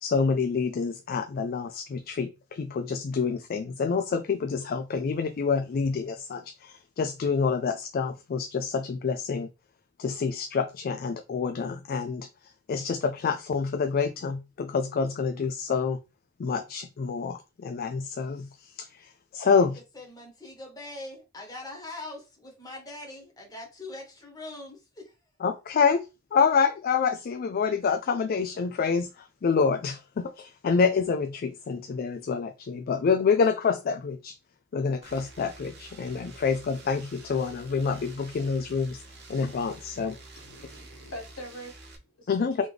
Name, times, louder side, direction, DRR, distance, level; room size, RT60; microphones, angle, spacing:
voice 1, 0.0-9.5 10.0-12.3 12.7-16.0 16.4-19.8 25.4-34.4 34.7-39.0 39.3-40.2 42.3-42.6, left 5 dB, 45° left, 0.3 m, -27 dB
voice 2, 19.9-25.1, left 2 dB, 20° left, 1.4 m, -42 dB
sound 1, 35.0-42.0, right 2 dB, 55° right, 1.1 m, -48 dB
voice 3, 40.3-42.7, equal, 85° left, 1.4 m, -44 dB
3.8 x 3.1 x 3.4 m
head